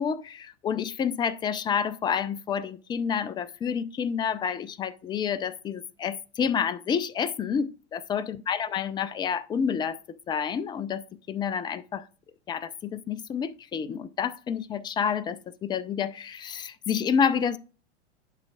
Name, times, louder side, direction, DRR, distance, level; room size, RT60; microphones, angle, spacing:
voice 1, 0.0-10.0 10.3-12.0 12.5-17.6, left 7 dB, 15° left, 0.4 m, -29 dB
11.0 x 5.2 x 2.4 m
figure-of-eight pair, 90°, 34 cm